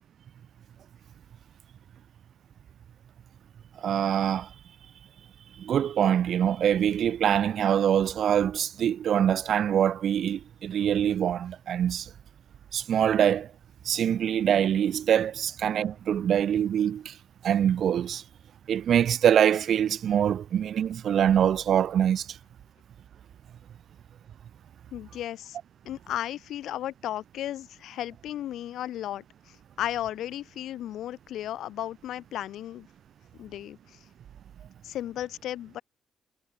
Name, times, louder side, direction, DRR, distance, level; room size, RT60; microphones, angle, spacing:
voice 1, 3.8-4.5 5.6-12.1 12.7-13.5 13.9-17.1 17.4-18.2 18.7-22.3, right 9 dB, 55° right, 0.9 m, -24 dB
voice 2, 24.9-25.6 25.8-29.2 29.8-32.9 33.4-34.0 34.8-35.8, left 12 dB, 80° left, 3.1 m, -34 dB
cardioid pair, 155°, 0 cm